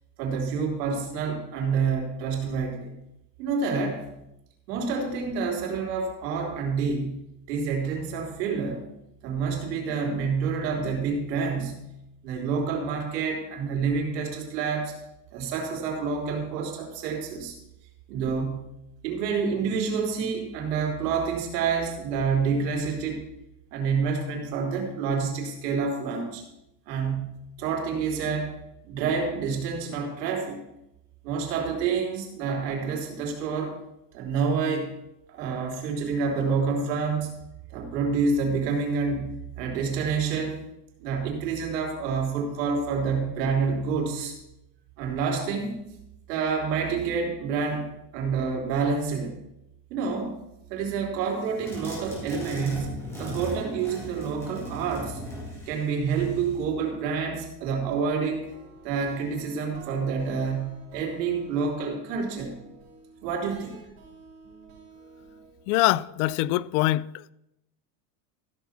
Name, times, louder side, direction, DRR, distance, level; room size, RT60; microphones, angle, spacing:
voice 1, 0.2-2.9 3.4-4.0 4.7-7.2 7.5-8.8 9.2-11.8 12.2-14.9 15.3-17.6 18.1-18.6 19.0-23.2 23.7-26.4 26.9-27.3 27.6-28.5 28.8-30.6 31.2-33.8 34.1-34.9 35.3-37.3 37.7-40.7 41.0-44.4 45.0-45.7 46.3-47.9 48.1-49.4 49.9-50.4 50.7-55.2 55.7-58.5 58.8-62.6 63.2-63.8, right 5 dB, 90° right, 3.6 m, -28 dB
sound 1, 51.6-56.6, right 1 dB, 5° left, 4.5 m, -38 dB
sound 2, 58.0-65.6, right 3 dB, 45° right, 5.7 m, -50 dB
voice 2, 65.7-67.3, left 17 dB, 65° left, 0.5 m, -24 dB
14.5 x 7.1 x 5.9 m
supercardioid pair, 145°, 48 cm